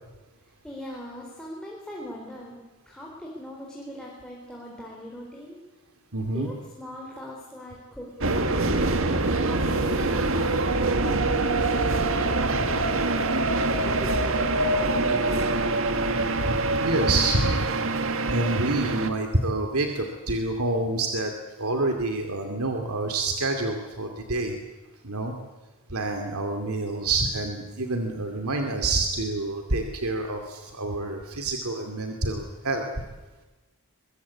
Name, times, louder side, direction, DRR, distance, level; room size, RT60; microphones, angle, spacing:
voice 1, 0.6-2.6 2.9-5.6 6.3-9.2 9.6-15.7, equal, 5° left, -3 dB, 4.3 m, -41 dB
voice 2, 6.1-6.5 9.5-9.7 16.4-17.7 18.3-24.5 25.0-25.3 25.9-32.9, right 2 dB, 80° right, 4 dB, 2.4 m, -27 dB
sound 1, 8.2-19.1, right 2 dB, 65° right, 1.8 m, -24 dB
23.0 x 23.0 x 8.4 m, 1.2 s
head